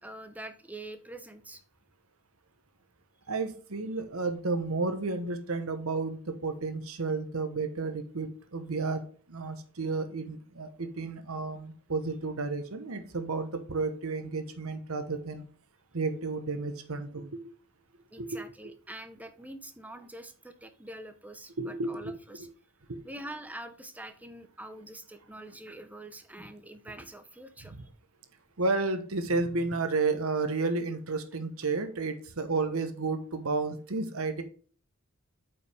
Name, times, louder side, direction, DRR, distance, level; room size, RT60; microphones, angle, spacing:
voice 1, 0.0-1.6 18.1-22.5 23.0-27.9, right 1 dB, 5° right, 8 dB, 1.0 m, -45 dB
voice 2, 3.3-15.4 15.9-17.5 18.2-18.4 21.6-22.1 22.9-23.0 28.6-34.4, right 3 dB, 80° right, 8 dB, 1.1 m, -32 dB
9.0 x 5.4 x 3.4 m, 0.42 s
head